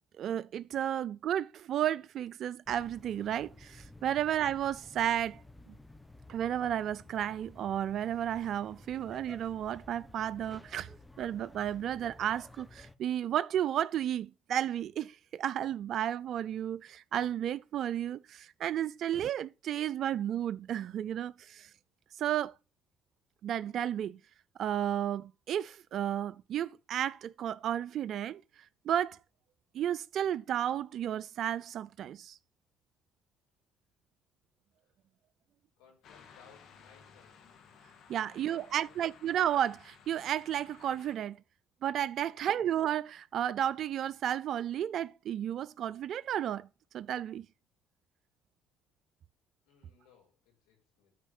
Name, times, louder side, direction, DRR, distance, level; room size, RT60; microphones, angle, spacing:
voice 1, 0.2-5.4 5.7-5.8 6.3-10.9 11.2-21.7 22.1-22.5 23.4-24.2 24.6-29.2 29.7-32.4 38.1-41.4 41.8-46.7 46.9-47.5, right 10 dB, 60° right, 0.4 m, -33 dB
sound 1, 2.7-13.0, left 2 dB, 10° left, 1.1 m, -54 dB
voice 2, 35.8-37.5 38.1-39.0 42.2-42.5 49.7-51.2, left 6 dB, 85° left, 5.6 m, -63 dB
sound 2, 36.0-41.2, left 6 dB, 65° left, 2.4 m, -57 dB
9.3 x 5.1 x 6.0 m
supercardioid pair, 75°, 0 cm